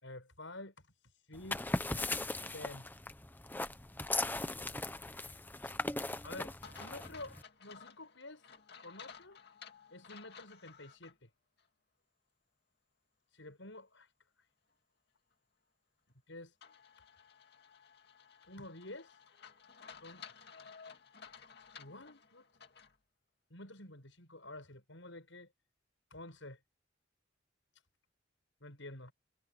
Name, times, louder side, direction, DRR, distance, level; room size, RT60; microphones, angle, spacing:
voice 1, 0.0-0.7 1.0-1.6 2.5-2.9 5.6-5.8 6.2-8.5 8.8-9.4 9.9-11.3 13.3-14.1 16.3-16.6 18.5-19.2 20.0-20.3 21.8-22.5 23.5-25.5 26.1-26.6 27.7-27.8 28.6-29.1, left 2 dB, 80° left, 7.0 m, -49 dB
sound 1, 1.3-7.4, left 2 dB, 10° left, 0.8 m, -38 dB
sound 2, 6.6-11.1 11.6-11.7 16.6-23.0, left 6 dB, 60° left, 2.3 m, -55 dB
head